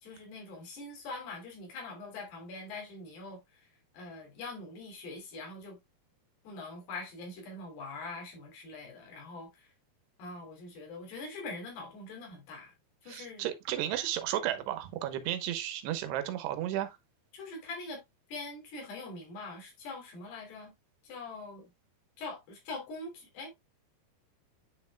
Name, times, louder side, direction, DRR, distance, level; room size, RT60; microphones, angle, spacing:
voice 1, 0.0-3.7 3.9-5.8 6.4-9.7 10.2-12.7 13.0-13.5 17.3-18.0 18.3-20.7 21.0-21.7 22.2-23.5, left 3 dB, 75° left, 5.3 m, -43 dB
voice 2, 13.1-17.0, right 12 dB, 90° right, 3.1 m, -33 dB
9.9 x 5.4 x 2.2 m
omnidirectional pair, 4.7 m